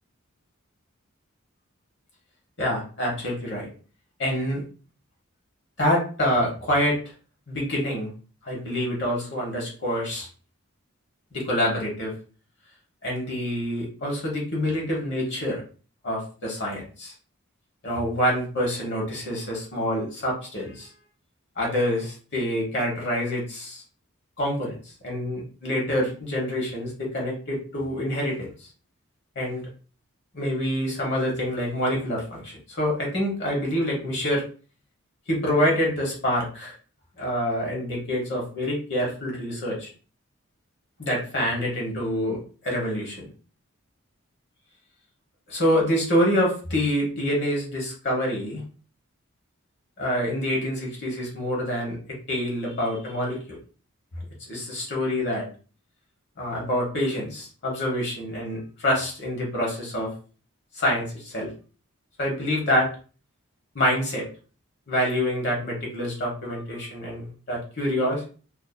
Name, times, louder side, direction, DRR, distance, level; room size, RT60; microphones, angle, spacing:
voice 1, 2.6-3.7 4.2-4.6 5.8-7.0 7.5-8.1 8.4-10.3 11.3-12.1 13.0-15.6 16.0-17.1 17.8-20.9 21.6-23.8 24.4-24.8 25.0-28.7 29.3-29.6 30.3-34.4 35.3-36.7 37.2-39.9 41.0-43.3 45.5-48.6 50.0-52.0 52.3-53.6 54.5-55.5 56.4-60.1 60.7-61.5 62.2-62.9 63.7-64.3 64.9-68.3, equal, 50° left, -2 dB, 0.9 m, -26 dB
2.5 x 2.5 x 2.2 m, 0.38 s
head